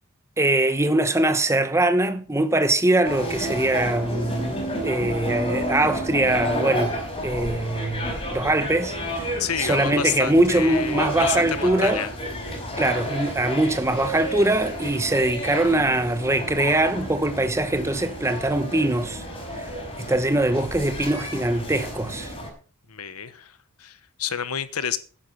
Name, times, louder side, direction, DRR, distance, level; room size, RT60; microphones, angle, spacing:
voice 1, 0.4-9.0 9.6-12.1 12.8-19.2 19.5-19.7 20.0-22.3, right 1 dB, 15° right, 1.0 m, -22 dB
sound 1, 3.0-22.5, equal, 25° left, 4.9 m, -31 dB
voice 2, 9.4-12.1 22.9-25.0, left 8 dB, 75° left, 1.2 m, -29 dB
11.5 x 10.0 x 5.7 m
head